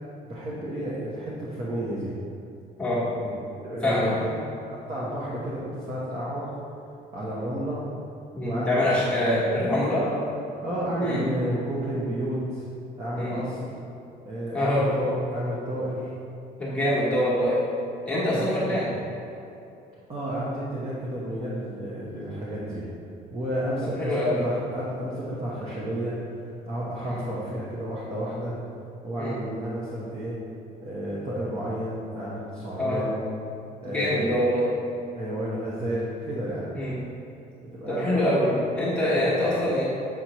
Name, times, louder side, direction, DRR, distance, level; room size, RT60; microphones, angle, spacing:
voice 1, 0.3-2.1 3.2-4.2 4.9-6.5 7.1-7.8 8.4-8.9 9.1-9.4 10.0-10.2 10.6-12.6 13.0-13.8 14.2-16.1 16.9-17.1 18.1-18.8 20.1-22.8 23.3-26.1 26.4-28.5 29.0-30.4 30.8-33.2 33.8-34.3 35.2-36.8 37.7-38.5 39.0-39.4, equal, 35° right, -7 dB, 1.1 m, -31 dB
voice 2, 8.3-10.0 11.0-11.2 13.2-13.4 14.5-14.9 16.6-17.6 18.0-18.9 24.0-24.5 27.0-27.2 29.2-29.3 32.8-33.0 33.8-34.7 36.7-37.0 37.9-39.8, left 1 dB, 5° left, -10 dB, 1.4 m, -24 dB
7.4 x 4.2 x 3.1 m, 2.8 s
cardioid pair, 110°, 17 cm